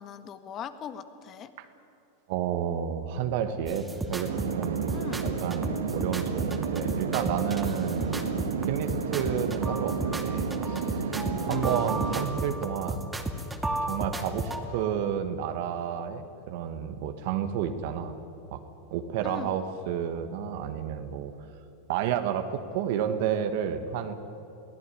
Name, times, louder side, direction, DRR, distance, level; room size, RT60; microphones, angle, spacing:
voice 1, 0.0-1.5 4.9-5.2 11.5-11.7 19.2-19.5, left 9 dB, 40° left, 11 dB, 1.6 m, -39 dB
voice 2, 2.3-5.1 5.4-11.1 11.4-13.1 13.8-18.1 18.5-18.6 18.9-21.3 21.9-24.1, right 9 dB, 60° right, 8 dB, 1.5 m, -31 dB
sound 1, 3.7-14.6, right 1 dB, 10° right, 2.5 m, -34 dB
sound 2, 4.3-12.2, right 6 dB, 80° right, 1.8 m, -31 dB
22.5 x 16.5 x 9.9 m, 2.8 s
hypercardioid pair, 95°, 0 cm